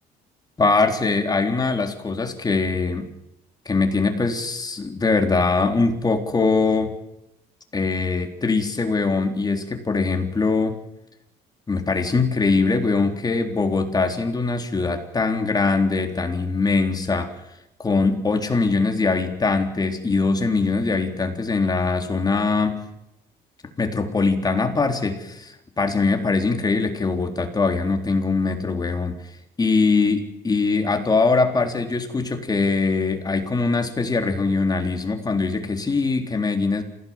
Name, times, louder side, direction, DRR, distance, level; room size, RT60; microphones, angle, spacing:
voice 1, 0.6-3.1 3.7-7.0 7.7-10.8 11.7-17.3 17.8-22.8 23.8-29.2 29.6-36.8, left 3 dB, 25° left, 5 dB, 3.9 m, -22 dB
27.5 x 17.0 x 7.5 m, 0.87 s
cardioid pair, 110°, 17 cm